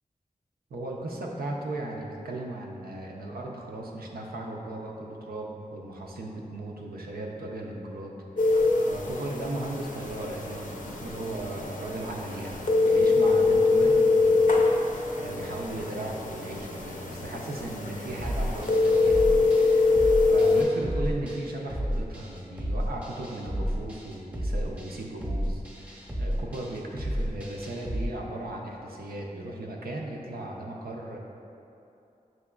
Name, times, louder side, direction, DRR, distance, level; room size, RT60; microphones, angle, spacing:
voice 1, 0.7-31.2, right 1 dB, 85° right, -1 dB, 0.5 m, -37 dB
sound 1, 8.4-20.6, left 3 dB, 60° left, 0.5 m, -24 dB
sound 2, 18.2-28.1, equal, 10° right, 0.6 m, -32 dB
6.0 x 2.9 x 2.3 m, 2.7 s
cardioid pair, 55°, 15 cm